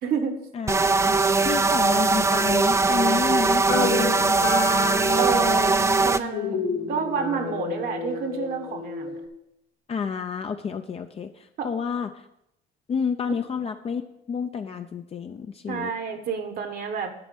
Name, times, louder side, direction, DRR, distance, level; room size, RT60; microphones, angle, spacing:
voice 1, 0.0-0.4 5.2-6.6 6.9-9.2 11.6-11.7 15.7-17.1, right 6 dB, 60° right, 6 dB, 1.3 m, -29 dB
voice 2, 0.5-1.2 1.4-4.6 9.9-12.3 12.9-14.0 14.3-15.9, left 6 dB, 35° left, 6 dB, 0.6 m, -30 dB
sound 1, 0.7-6.2, right 3 dB, 15° right, 0.4 m, -21 dB
sound 2, 3.7-9.3, left 4 dB, 65° left, 2.2 m, -30 dB
10.5 x 4.3 x 7.8 m, 0.82 s
cardioid pair, 110°, 17 cm